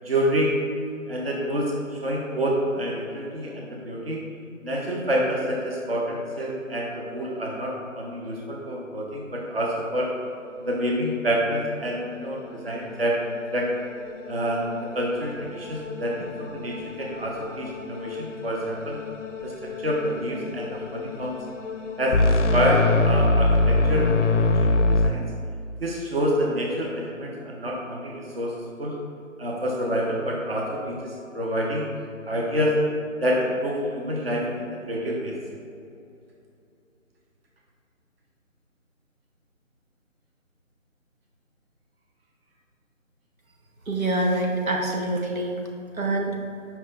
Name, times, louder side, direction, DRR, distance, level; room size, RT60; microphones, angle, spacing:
voice 1, 0.0-0.5 1.1-4.2 4.6-10.1 10.6-13.2 13.5-13.7 14.3-14.7 14.9-19.0 19.4-21.4 22.0-25.2 25.8-28.5 28.8-29.0 29.4-31.9 32.3-32.7 33.2-35.4, equal, 45° right, -2 dB, 0.9 m, -27 dB
sound 1, 11.5-11.6 11.9-12.1 12.4-25.1, left 2 dB, 60° left, 0.5 m, -25 dB
voice 2, 43.9-45.6 46.0-46.3, right 2 dB, 80° right, 0 dB, 1.2 m, -25 dB
8.2 x 5.6 x 2.4 m, 2.5 s
figure-of-eight pair, 175°, 41 cm